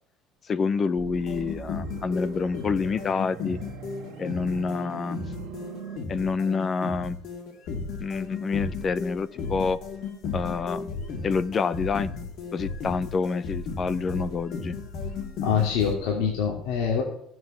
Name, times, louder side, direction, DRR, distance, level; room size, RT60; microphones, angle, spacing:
voice 1, 0.5-3.6 4.2-5.2 6.1-7.2 8.0-9.8 10.3-10.9 11.2-12.1 12.5-14.7, left 5 dB, 25° left, 17 dB, 0.5 m, -27 dB
sound 1, 1.0-6.0, right 6 dB, 60° right, 1.6 m, -41 dB
sound 2, 1.1-15.9, left 4 dB, 45° left, 2.1 m, -35 dB
voice 2, 15.4-17.0, left 7 dB, 85° left, 0 dB, 2.7 m, -25 dB
14.5 x 7.8 x 7.2 m, 0.71 s
cardioid pair, 180°, 0 cm